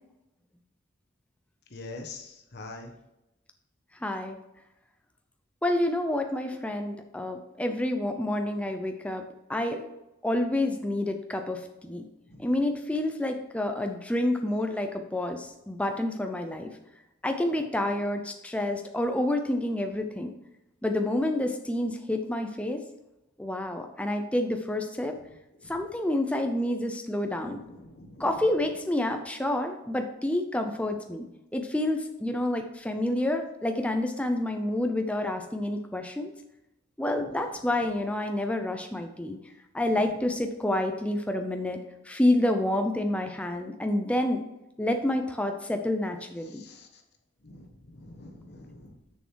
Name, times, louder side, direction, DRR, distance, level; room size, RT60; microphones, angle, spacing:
voice 1, 1.7-2.9 12.3-12.5 25.6-25.7 27.4-28.4 37.1-37.2 39.9-40.1 46.4-47.0 47.4-48.9, left 2 dB, 50° left, 2 dB, 1.2 m, -45 dB
voice 2, 4.0-4.4 5.6-9.2 9.5-9.9 10.2-12.0 12.4-16.7 17.2-20.3 20.8-22.8 23.4-25.2 25.7-27.6 28.2-36.3 37.0-39.4 39.7-44.4 44.8-46.6, left 1 dB, 5° left, 4 dB, 0.5 m, -28 dB
6.8 x 6.3 x 4.7 m, 0.91 s
head